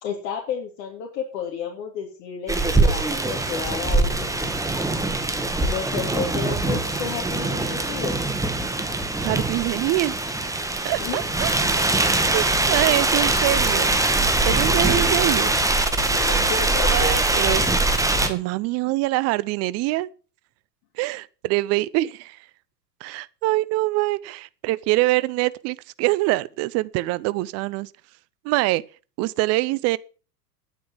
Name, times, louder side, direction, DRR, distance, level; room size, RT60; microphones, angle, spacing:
voice 1, 0.0-4.5 5.6-8.2 11.0-11.2 16.1-17.1, left 7 dB, 55° left, 3.1 m, -32 dB
sound 1, 2.5-18.3, right 2 dB, 5° right, 1.8 m, -22 dB
voice 2, 9.2-10.2 10.8-11.8 12.2-13.9 14.4-15.6 16.9-17.6 18.3-20.1 21.0-22.4 23.0-27.9 28.4-28.8 29.2-30.0, right 18 dB, 30° right, 0.6 m, -24 dB
10.0 x 9.3 x 7.4 m
figure-of-eight pair, 90°, 49 cm